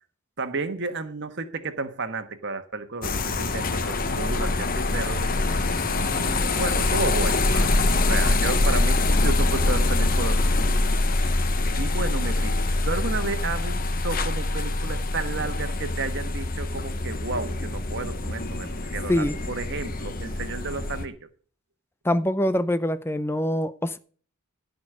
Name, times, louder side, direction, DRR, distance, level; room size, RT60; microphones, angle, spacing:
voice 1, 0.4-5.4 5.8-7.8 8.1-10.8 11.8-21.2, right 3 dB, 55° right, 1.4 m, -32 dB
sound 1, 3.0-21.0, left 2 dB, 40° left, 1.1 m, -24 dB
voice 2, 22.0-24.0, left 1 dB, 10° left, 0.5 m, -24 dB
16.0 x 5.3 x 6.5 m
head